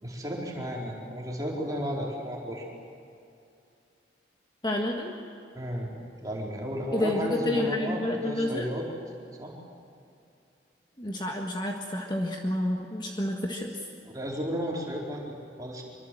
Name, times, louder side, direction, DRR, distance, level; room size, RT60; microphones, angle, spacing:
voice 1, 0.0-2.7 5.5-5.9 6.2-8.9 9.4-9.5 14.0-15.8, equal, 20° right, -3 dB, 4.4 m, -33 dB
voice 2, 4.6-5.1 6.9-8.8 11.0-13.7, left 1 dB, 25° left, 1 dB, 1.7 m, -29 dB
26.0 x 24.0 x 7.9 m, 2.5 s
head